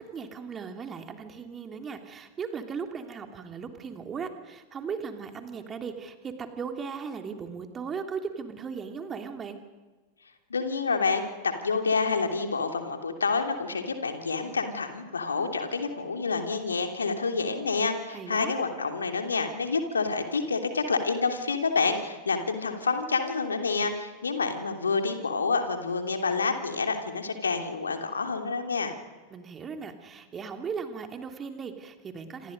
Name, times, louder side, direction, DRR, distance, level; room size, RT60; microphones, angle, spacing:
voice 1, 0.0-9.6 18.1-18.5 29.3-32.5, right 6 dB, 20° right, 5 dB, 3.0 m, -37 dB
voice 2, 10.5-28.9, left 4 dB, 75° left, 5 dB, 3.0 m, -28 dB
27.5 x 27.0 x 5.4 m, 1.3 s
figure-of-eight pair, 90°, 0 cm